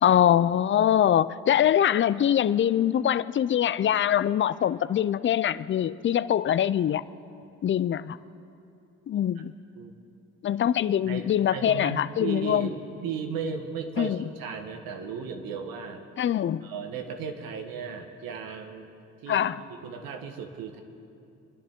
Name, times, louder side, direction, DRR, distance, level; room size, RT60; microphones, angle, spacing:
voice 1, 0.0-7.0 7.6-8.2 9.1-9.5 10.4-12.7 14.0-14.2 16.2-16.7 19.3-19.6, left 10 dB, 35° left, 0.4 m, -23 dB
voice 2, 11.5-16.0 16.6-18.9 19.2-20.8, right 6 dB, 80° right, 1.5 m, -35 dB
24.5 x 10.5 x 3.7 m
supercardioid pair, 65°, 35 cm